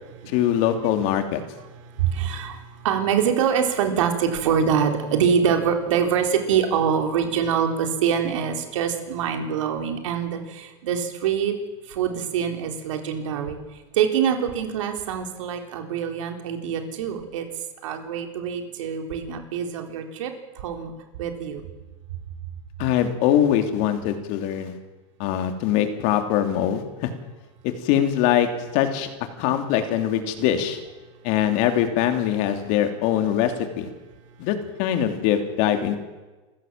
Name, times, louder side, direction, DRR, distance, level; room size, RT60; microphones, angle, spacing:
voice 1, 0.3-1.4 22.8-24.7 25.2-27.1 27.6-29.1 29.4-30.8 31.2-33.9 34.4-36.0, left 10 dB, 55° left, 6 dB, 3.1 m, -22 dB
voice 2, 2.0-11.5 11.9-13.6 13.9-17.5 17.8-20.9 21.2-21.6, right 7 dB, 85° right, 5 dB, 3.9 m, -24 dB
27.0 x 15.0 x 7.5 m, 1.2 s
supercardioid pair, 145°, 16 cm